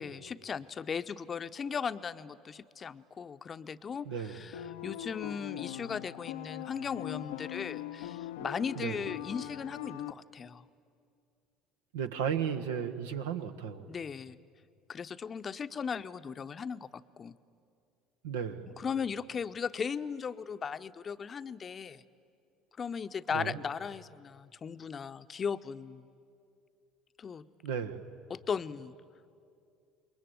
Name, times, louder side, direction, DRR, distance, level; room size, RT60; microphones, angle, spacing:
voice 1, 0.0-10.6 13.9-14.4 14.9-17.4 18.8-22.0 22.8-26.1 27.2-27.5 28.3-29.0, left 6 dB, 35° left, 11 dB, 0.8 m, -37 dB
voice 2, 4.0-4.4 8.7-9.0 11.9-13.9 18.2-18.7 23.3-23.6 27.6-28.0, right 7 dB, 75° right, 7 dB, 1.2 m, -34 dB
sound 1, 4.5-10.1, left 13 dB, 75° left, 0.7 m, -41 dB
27.5 x 22.0 x 9.2 m, 2.4 s
hypercardioid pair, 65°, 0 cm